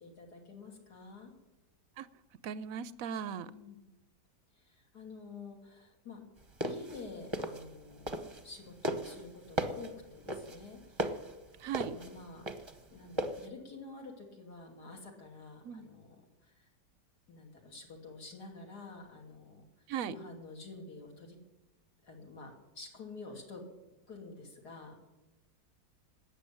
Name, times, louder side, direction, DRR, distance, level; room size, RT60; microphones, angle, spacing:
voice 1, 0.0-1.3 3.3-3.9 4.6-6.2 6.6-11.0 11.7-12.5 12.9-16.6 17.3-19.6 20.0-21.4 22.0-23.6 24.1-25.0, left 3 dB, 70° left, 3.3 m, -49 dB
voice 2, 2.4-3.5 11.6-12.0 15.6-15.9 19.9-20.1, right 8 dB, 65° right, 0.9 m, -38 dB
sound 1, 6.4-8.5 8.8-13.5, equal, 20° right, 0.8 m, -36 dB
13.5 x 8.9 x 10.0 m
omnidirectional pair, 1.8 m